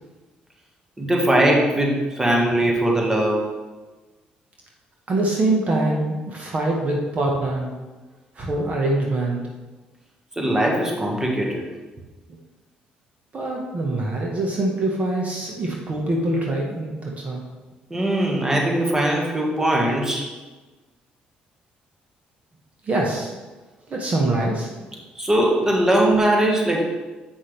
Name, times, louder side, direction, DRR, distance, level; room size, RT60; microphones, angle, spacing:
voice 1, 1.0-3.5 10.3-11.6 17.9-20.3 25.1-26.8, right 1 dB, 15° right, -1 dB, 1.6 m, -20 dB
voice 2, 5.1-7.7 8.3-9.4 13.3-17.4 22.8-23.3 23.9-24.7, right 2 dB, 45° right, -1 dB, 1.3 m, -24 dB
7.6 x 5.6 x 3.4 m, 1.2 s
supercardioid pair, 75°, 3 cm